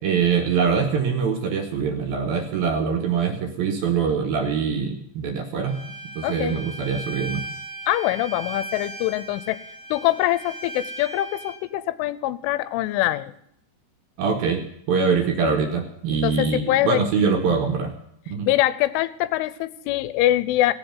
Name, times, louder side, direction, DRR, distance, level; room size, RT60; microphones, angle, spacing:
voice 1, 0.0-5.8 6.2-7.4 14.2-17.9 18.3-18.5, right 6 dB, 65° right, 4 dB, 2.6 m, -23 dB
Bowed string instrument, 5.6-11.6, right 1 dB, 40° left, 0.8 m, -37 dB
voice 2, 6.2-6.6 7.9-9.6 9.9-13.3 16.2-17.0 18.5-20.7, left 15 dB, 85° left, 16 dB, 3.2 m, -23 dB
17.0 x 7.8 x 9.1 m, 0.71 s
omnidirectional pair, 5.6 m